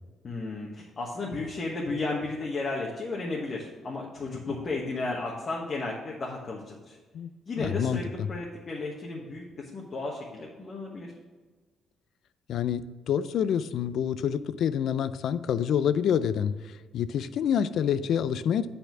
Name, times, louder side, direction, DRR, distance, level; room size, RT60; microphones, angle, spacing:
voice 1, 0.2-7.0 7.5-11.1, left 3 dB, 45° left, -3 dB, 1.2 m, -34 dB
voice 2, 7.6-8.3 12.5-18.7, left 8 dB, 70° left, 14 dB, 0.4 m, -27 dB
8.1 x 4.3 x 6.0 m, 1.3 s
cardioid pair, 90°, 0 cm